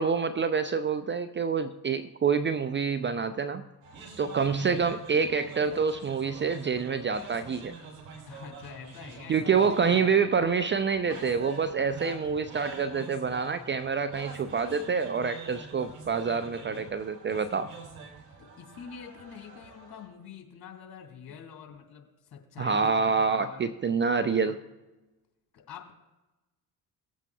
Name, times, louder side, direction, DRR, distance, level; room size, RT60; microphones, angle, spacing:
voice 1, 0.0-3.7 4.2-7.7 9.3-17.7 22.6-24.6, right 5 dB, 25° right, 11 dB, 0.5 m, -27 dB
sound 1, 3.8-20.0, right 5 dB, 70° right, 3.7 m, -46 dB
voice 2, 4.6-5.0 8.3-10.1 15.8-15.9 18.4-23.7 24.1-24.6 25.5-25.9, left 7 dB, 45° left, 2 dB, 2.8 m, -46 dB
19.0 x 8.1 x 2.3 m, 1.1 s
hypercardioid pair, 55°, 50 cm